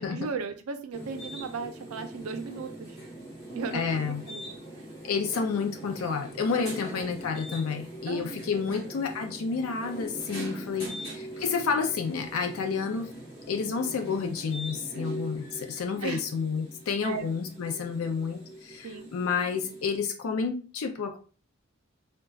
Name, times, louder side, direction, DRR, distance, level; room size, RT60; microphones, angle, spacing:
voice 1, 0.0-3.0 3.5-4.8 6.8-7.1 8.1-8.8 10.9-11.2 16.0-16.2 17.0-17.3 18.8-19.1, right 5 dB, 85° right, 8 dB, 0.4 m, -37 dB
sound 1, 0.9-20.0, right 1 dB, 25° left, 1.1 m, -42 dB
voice 2, 3.7-4.2 5.0-13.1 13.5-21.2, left 5 dB, 80° left, 5 dB, 0.4 m, -30 dB
3.8 x 2.2 x 2.3 m, 0.37 s
head